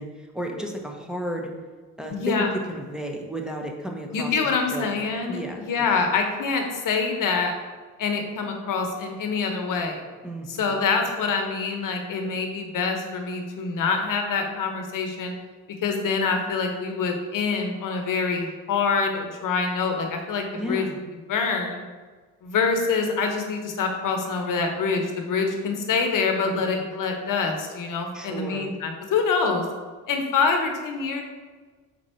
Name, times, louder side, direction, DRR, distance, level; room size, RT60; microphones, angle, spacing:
voice 1, 0.0-1.5 2.0-6.0 10.2-11.0 20.5-21.0 26.5-26.9 28.1-28.7, equal, ahead, 2 dB, 1.2 m, -33 dB
voice 2, 2.1-2.5 4.1-7.5 8.0-10.0 10.5-15.3 15.8-20.8 21.3-21.8 22.4-29.7 30.1-31.2, left 4 dB, 70° left, 4 dB, 1.1 m, -25 dB
5.9 x 4.5 x 4.4 m, 1.4 s
supercardioid pair, 60°, 34 cm